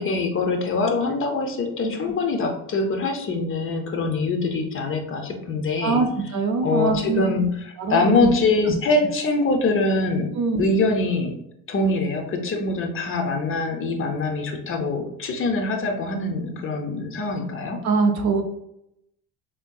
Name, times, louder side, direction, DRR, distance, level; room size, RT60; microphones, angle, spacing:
voice 1, 0.0-6.0 6.6-10.3 10.6-11.4 11.7-17.8, left 3 dB, 35° left, 3 dB, 0.5 m, -24 dB
voice 2, 5.8-7.3 7.8-8.3 10.4-10.6 17.8-18.4, right 4 dB, 50° right, 5 dB, 0.5 m, -23 dB
3.6 x 2.6 x 2.2 m, 0.80 s
cardioid pair, 115°, 38 cm